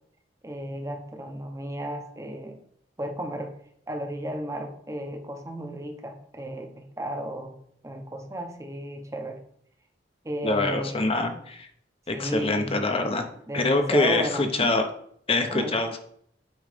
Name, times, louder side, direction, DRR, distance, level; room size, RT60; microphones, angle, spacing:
voice 1, 0.4-2.6 3.0-3.5 3.9-7.5 7.8-9.4 10.2-11.1 12.1-12.8 13.5-14.7 15.5-15.8, equal, 15° right, 4 dB, 0.9 m, -33 dB
voice 2, 10.4-11.7 12.1-13.2 13.5-14.8 15.3-16.0, left 2 dB, 30° left, 5 dB, 0.8 m, -24 dB
8.3 x 3.2 x 5.0 m, 0.66 s
head